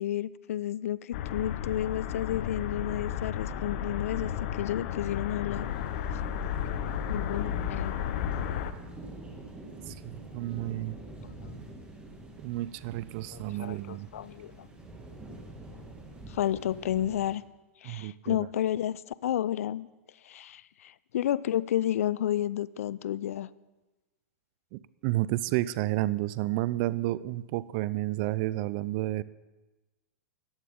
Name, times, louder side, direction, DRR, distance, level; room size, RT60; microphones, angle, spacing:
voice 1, 0.0-5.7 7.1-7.9 11.2-11.5 13.3-14.7 16.3-17.4 17.8-19.9 20.2-23.5, left 11 dB, 75° left, 20 dB, 0.4 m, -31 dB
sound 1, 1.1-8.7, left 9 dB, 55° left, 0.7 m, -33 dB
sound 2, 5.5-17.3, right 2 dB, 15° right, 2.0 m, -46 dB
voice 2, 9.9-11.0 12.4-14.1 17.8-18.4 24.7-29.2, right 17 dB, 45° right, 19 dB, 0.4 m, -31 dB
14.5 x 10.0 x 3.7 m, 1.1 s
hypercardioid pair, 110°, 8 cm